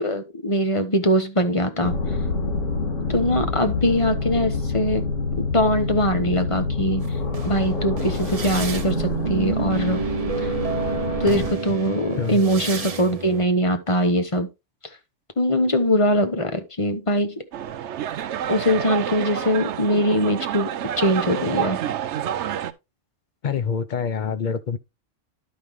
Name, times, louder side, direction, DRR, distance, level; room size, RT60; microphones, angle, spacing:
voice 1, 0.0-1.9 3.1-5.0 5.5-7.2 7.4-10.0 10.4-10.5 11.2-14.5 15.4-17.4 18.5-21.8, equal, 30° left, 0.9 m, -22 dB
sound 1, 1.8-11.5, left 3 dB, 80° left, 2.1 m, -27 dB
sound 2, 7.0-13.5, right 5 dB, 35° right, 0.6 m, -29 dB
sound 3, 17.5-22.7, right 10 dB, 70° right, 0.9 m, -28 dB
voice 2, 23.4-24.8, left 6 dB, 50° left, 0.6 m, -26 dB
11.5 x 5.3 x 3.1 m
omnidirectional pair, 1.3 m